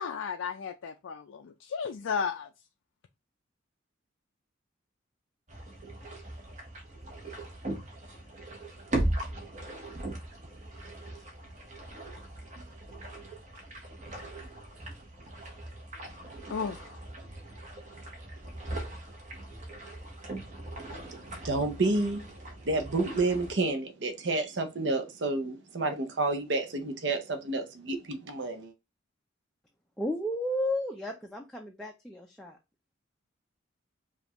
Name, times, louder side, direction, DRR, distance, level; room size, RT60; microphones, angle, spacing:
voice 1, 0.0-2.5 16.5-16.9, left 6 dB, 75° left, 0.4 m, -34 dB
sound 1, 5.5-23.5, right 1 dB, 35° right, 1.1 m, -39 dB
voice 2, 20.8-28.7, right 2 dB, 60° right, 0.7 m, -30 dB
voice 3, 30.0-32.6, left 1 dB, 5° left, 0.4 m, -33 dB
5.1 x 2.4 x 2.9 m
head